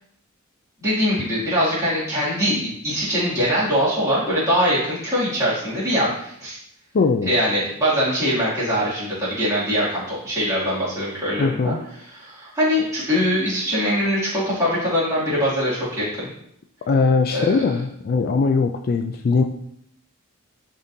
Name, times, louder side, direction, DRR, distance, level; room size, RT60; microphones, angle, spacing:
voice 1, 0.8-6.6 7.2-11.7 12.1-16.3 17.3-17.7, equal, 15° right, -10 dB, 2.5 m, -22 dB
voice 2, 6.9-7.3 11.4-11.8 16.9-19.4, left 4 dB, 45° left, 6 dB, 0.3 m, -20 dB
10.5 x 3.7 x 2.7 m, 0.71 s
head